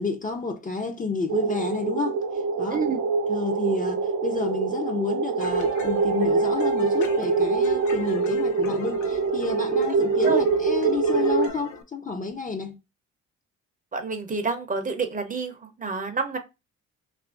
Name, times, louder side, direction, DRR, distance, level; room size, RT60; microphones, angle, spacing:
voice 1, 0.0-2.2 2.6-2.8 3.3-12.8, left 4 dB, 25° left, 0.5 m, -30 dB
sound 1, 1.3-11.5, right 4 dB, 65° right, 0.7 m, -24 dB
sound 2, 5.4-11.8, left 4 dB, 75° left, 0.7 m, -39 dB
voice 2, 13.9-16.4, right 4 dB, 25° right, 0.6 m, -28 dB
2.7 x 2.4 x 3.6 m
cardioid pair, 90°, 30 cm